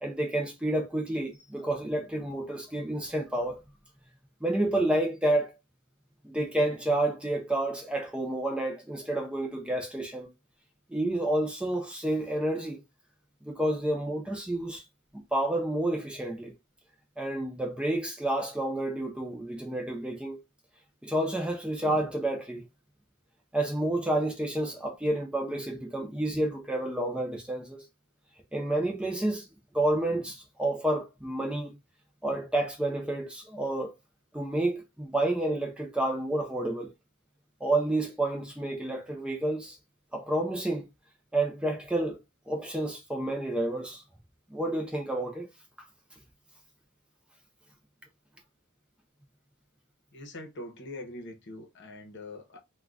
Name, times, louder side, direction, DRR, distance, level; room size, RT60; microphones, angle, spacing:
voice 1, 0.0-3.6 4.4-5.5 6.2-10.3 10.9-12.8 13.4-14.8 15.3-16.5 17.2-20.4 21.0-22.7 23.5-27.8 28.5-29.5 29.7-31.7 32.2-33.9 34.3-36.9 37.6-39.8 40.1-40.8 41.3-42.2 42.5-44.0 44.5-45.5, right 1 dB, 5° right, 0.4 m, -29 dB
voice 2, 50.1-52.6, left 1 dB, 55° left, 0.8 m, -43 dB
3.6 x 2.2 x 2.3 m
head